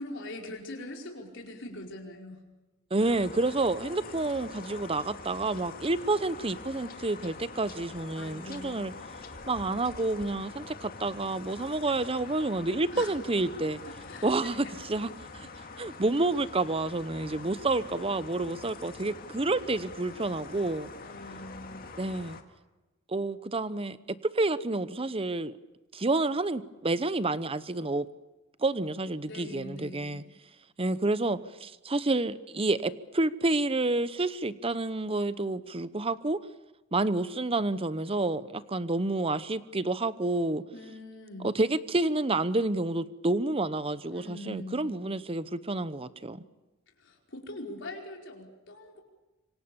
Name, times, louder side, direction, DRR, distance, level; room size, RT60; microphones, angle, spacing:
voice 1, 0.0-2.4 8.1-8.8 12.9-13.5 14.0-14.8 21.0-22.0 29.3-30.3 40.7-41.6 44.1-45.0 47.0-49.0, left 1 dB, 60° left, 1 dB, 5.1 m, -43 dB
voice 2, 2.9-8.9 9.5-13.8 14.2-15.1 15.8-20.9 22.0-22.4 23.1-24.0 24.2-25.6 25.9-28.1 28.6-30.2 30.8-36.4 36.9-40.6 41.4-46.4, right 2 dB, 25° right, 15 dB, 0.9 m, -29 dB
sound 1, 3.0-22.4, left 4 dB, 45° left, 2.2 m, -45 dB
26.5 x 25.0 x 7.1 m, 1.1 s
head